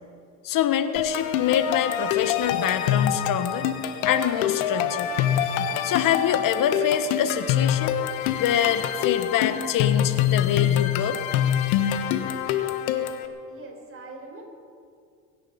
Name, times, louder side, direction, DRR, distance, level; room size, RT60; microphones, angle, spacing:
voice 1, 0.4-3.7 4.0-5.1 5.8-7.9 8.4-11.2, left 9 dB, 50° left, 11 dB, 1.2 m, -25 dB
sound 1, 1.0-13.3, left 10 dB, 80° left, 1.4 m, -25 dB
voice 2, 13.5-14.4, right 3 dB, 30° right, 0 dB, 5.3 m, -42 dB
23.5 x 10.0 x 5.8 m, 2.3 s
supercardioid pair, 85°, 41 cm